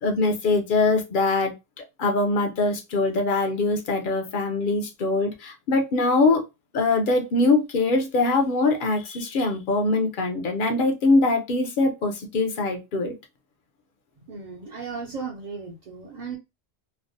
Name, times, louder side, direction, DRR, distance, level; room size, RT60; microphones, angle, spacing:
voice 1, 0.0-6.4 6.7-13.1, left 3 dB, 55° left, 0.7 m, -23 dB
voice 2, 14.3-16.4, right 5 dB, 50° right, 0.5 m, -35 dB
3.2 x 2.1 x 2.5 m
omnidirectional pair, 1.2 m